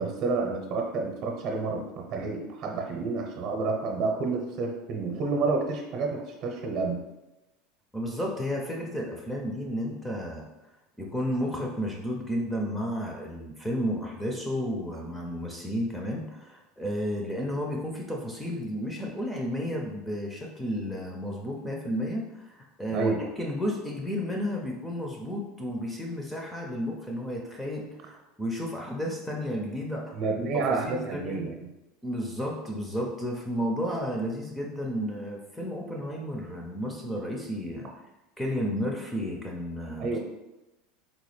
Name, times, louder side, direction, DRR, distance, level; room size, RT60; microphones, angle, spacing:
voice 1, 0.0-7.0 22.9-23.2 30.1-31.7 40.0-40.2, right 3 dB, 45° right, 1 dB, 0.7 m, -29 dB
voice 2, 7.9-10.4 11.0-30.2 30.8-31.5 32.0-37.9 38.4-40.2, equal, 5° left, 0 dB, 0.4 m, -32 dB
3.9 x 2.2 x 3.2 m, 1.0 s
supercardioid pair, 150°, 0 cm